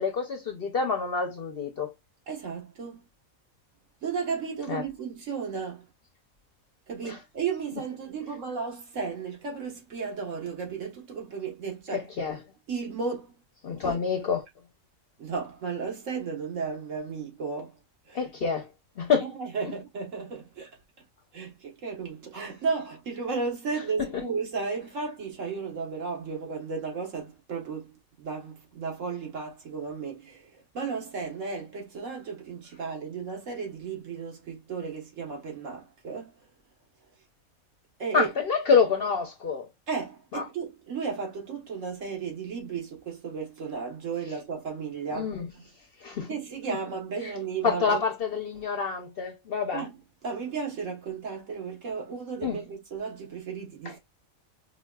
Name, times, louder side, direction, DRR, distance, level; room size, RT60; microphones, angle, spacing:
voice 1, 0.0-1.9 4.7-4.8 7.0-7.2 11.9-12.4 13.6-14.5 18.1-18.7 19.0-19.3 24.1-24.2 38.1-39.7 40.3-40.4 45.1-45.5 46.0-46.3 47.2-47.3 47.6-49.8 52.4-52.6 53.8-53.9, left 5 dB, 55° left, 0.7 m, -27 dB
voice 2, 2.3-3.0 4.0-5.9 6.9-12.1 12.7-13.3 13.8-14.0 15.2-17.7 18.1-18.2 19.2-20.7 21.3-27.9 28.2-36.3 38.0-38.3 39.9-45.3 46.3-48.0 49.7-49.9 50.2-54.0, right 5 dB, 65° right, 1.6 m, -34 dB
4.8 x 2.3 x 2.2 m
omnidirectional pair, 1.5 m